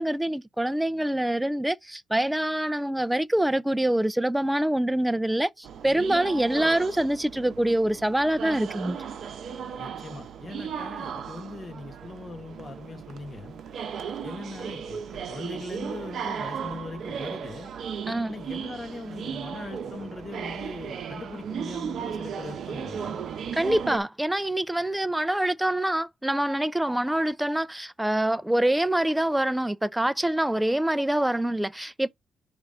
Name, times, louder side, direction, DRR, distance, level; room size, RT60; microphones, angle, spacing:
voice 1, 0.0-9.0 18.1-18.4 23.5-32.1, right 1 dB, 5° right, 0.3 m, -25 dB
sound 1, 5.6-24.0, right 7 dB, 55° right, 0.8 m, -36 dB
voice 2, 9.8-13.6 14.2-17.7 18.3-23.3, left 3 dB, 25° left, 1.4 m, -40 dB
5.2 x 3.4 x 5.3 m
cardioid pair, 155°, 0 cm